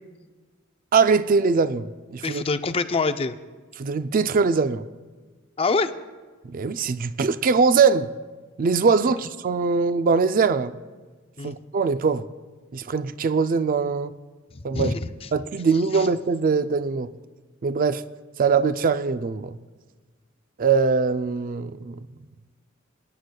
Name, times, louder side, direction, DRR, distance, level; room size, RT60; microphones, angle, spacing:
voice 1, 0.9-2.4 3.8-4.8 6.4-8.1 8.6-10.7 11.4-12.3 12.7-14.1 14.6-14.9 15.3-17.1 17.6-18.0 18.4-19.6 20.6-22.0, right 5 dB, 40° right, 0.4 m, -22 dB
voice 2, 2.2-3.4 5.6-5.9 11.4-11.5 14.5-15.3 15.9-16.1, left 4 dB, 30° left, 0.4 m, -25 dB
25.5 x 9.5 x 2.3 m
head